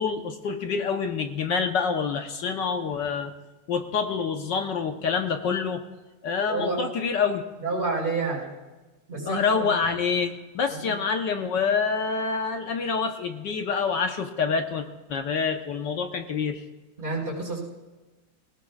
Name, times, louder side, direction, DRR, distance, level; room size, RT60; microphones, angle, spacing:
voice 1, 0.0-3.3 3.7-5.8 6.2-7.4 9.3-16.6, left 5 dB, 65° left, 5 dB, 1.4 m, -27 dB
voice 2, 6.5-6.8 7.6-8.5 9.1-9.7 10.8-10.9 17.0-17.6, right 3 dB, 30° right, -3 dB, 5.4 m, -29 dB
19.5 x 18.5 x 2.4 m, 1.2 s
omnidirectional pair, 2.3 m